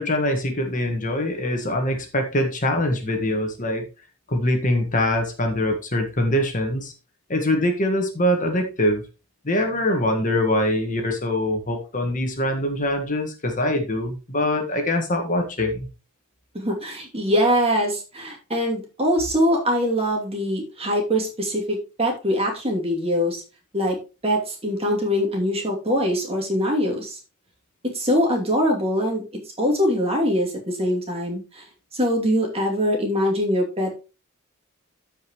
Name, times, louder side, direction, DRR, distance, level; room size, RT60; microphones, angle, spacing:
voice 1, 0.0-3.9 4.3-6.9 7.3-9.0 9.4-15.9, left 1 dB, 40° left, 4 dB, 1.6 m, -23 dB
voice 2, 16.5-23.4 23.7-24.0 24.2-27.2 27.8-29.2 29.6-31.6 31.9-33.9, equal, 30° right, 0 dB, 2.8 m, -23 dB
14.5 x 5.3 x 3.1 m, 0.31 s
head